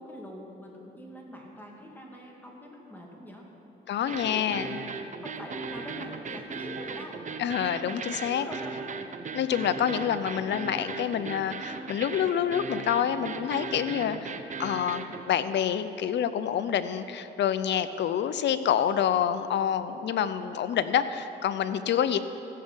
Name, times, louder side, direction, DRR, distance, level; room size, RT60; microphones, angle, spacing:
voice 1, 0.0-3.5 4.2-4.7 5.2-7.3 8.3-8.8 22.1-22.2, left 1 dB, 10° left, -2 dB, 2.6 m, -44 dB
voice 2, 3.9-4.8 7.4-8.5 9.3-14.3 14.6-22.2, left 9 dB, 65° left, 12 dB, 0.7 m, -27 dB
sound 1, 4.1-15.2, right 5 dB, 40° right, 0.8 m, -37 dB
15.0 x 6.8 x 8.2 m, 3.0 s
cardioid pair, 90°, 20 cm